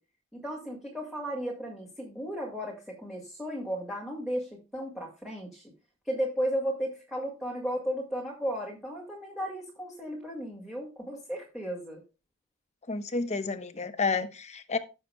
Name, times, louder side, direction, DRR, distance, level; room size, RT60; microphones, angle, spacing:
voice 1, 0.3-5.7 6.1-12.0, equal, ahead, -3 dB, 1.9 m, -34 dB
voice 2, 12.9-14.8, left 4 dB, 30° left, 9 dB, 0.9 m, -30 dB
16.5 x 6.8 x 2.2 m, 0.30 s
head